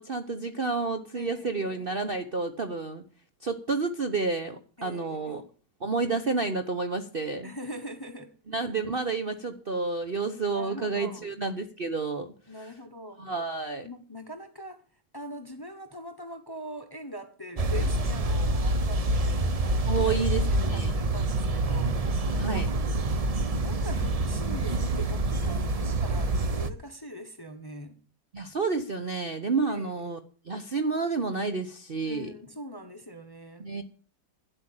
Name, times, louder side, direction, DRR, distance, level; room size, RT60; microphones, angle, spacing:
voice 1, 0.0-3.0 3.4-5.4 5.8-7.5 8.5-12.3 13.2-13.9 19.9-20.9 22.4-22.7 28.3-30.2 30.5-32.3 33.6-33.8, right 4 dB, 40° right, 0.9 m, -30 dB
voice 2, 1.1-1.6 4.8-5.5 7.4-8.4 10.5-11.4 12.5-13.3 13.8-14.8 15.1-22.6 23.6-28.0 29.7-30.1 32.1-33.7, equal, 15° left, 1.1 m, -42 dB
sound 1, 17.6-26.7, right 2 dB, 65° right, 0.3 m, -27 dB
10.5 x 8.2 x 8.9 m
omnidirectional pair, 1.9 m